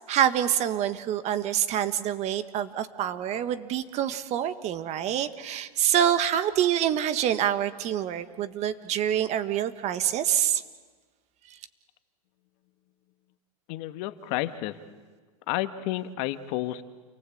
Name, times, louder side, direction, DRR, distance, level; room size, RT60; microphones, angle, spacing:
voice 1, 0.1-10.6, right 10 dB, 35° right, 11 dB, 1.5 m, -26 dB
voice 2, 13.7-14.8 15.5-16.8, left 15 dB, 50° left, 10 dB, 1.6 m, -31 dB
29.0 x 22.5 x 8.6 m, 1.4 s
hypercardioid pair, 130°, 19 cm